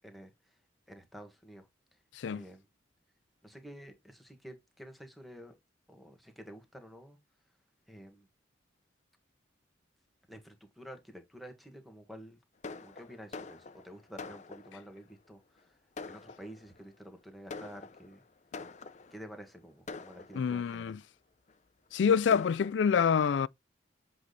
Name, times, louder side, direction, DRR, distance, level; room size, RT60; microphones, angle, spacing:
voice 1, 0.9-1.6 2.3-2.6 3.4-5.5 5.9-7.2 7.9-8.3 10.3-12.4 12.8-15.8 16.1-18.2 19.1-21.0, equal, ahead, 1.6 m, -50 dB
Fireworks, 12.6-15.0 15.6-15.7 16.0-16.8 17.5-19.3 19.9-20.8 21.5-21.6 21.9-22.0 22.3-22.7, left 4 dB, 40° left, 0.7 m, -45 dB
voice 2, 20.3-21.0 21.9-23.5, left 6 dB, 80° left, 0.4 m, -26 dB
7.7 x 4.0 x 3.3 m
head